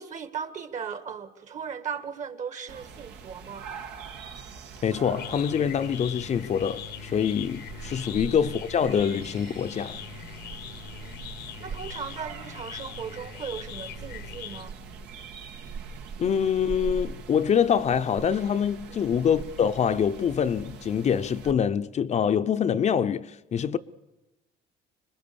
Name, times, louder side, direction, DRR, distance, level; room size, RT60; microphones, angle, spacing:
voice 1, 0.0-3.7 8.1-8.3 10.9-14.8 18.9-19.1, right 7 dB, 45° right, 1.9 m, -38 dB
sound 1, 2.7-21.5, right 6 dB, 80° right, 1.9 m, -42 dB
sound 2, 4.7-15.1, left 11 dB, 85° left, 1.3 m, -42 dB
voice 2, 4.8-10.0 16.2-23.8, left 8 dB, 40° left, 0.7 m, -25 dB
26.0 x 21.5 x 7.0 m
cardioid pair, 110°, 17 cm